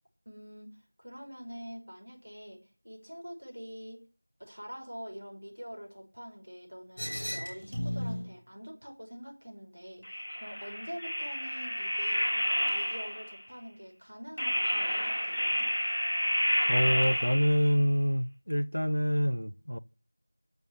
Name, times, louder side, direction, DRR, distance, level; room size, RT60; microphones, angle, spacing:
voice 1, 0.3-4.0 4.4-12.3 12.7-15.7, equal, 50° right, 5.7 m, -45 dB
sound 1, 7.0-8.3 10.0-13.4 14.4-17.8, equal, 25° left, 3.3 m, -30 dB
voice 2, 16.7-19.8, equal, 85° left, 0.8 m, -26 dB
11.0 x 7.0 x 7.1 m
figure-of-eight pair, 180°, 0 cm